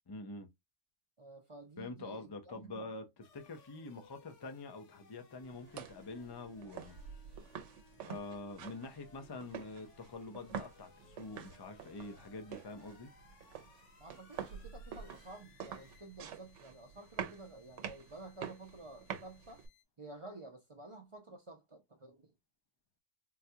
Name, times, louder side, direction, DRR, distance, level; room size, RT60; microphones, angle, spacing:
voice 1, 0.1-0.5 1.8-7.0 8.1-13.1, left 3 dB, 40° left, 0.3 m, -46 dB
voice 2, 1.2-2.8 14.0-19.6 20.0-22.3, right 2 dB, 40° right, 0.5 m, -52 dB
sound 1, 3.2-19.8, left 5 dB, 75° left, 1.0 m, -64 dB
sound 2, 5.4-19.7, right 8 dB, 80° right, 1.0 m, -48 dB
3.8 x 2.2 x 2.7 m
omnidirectional pair, 1.2 m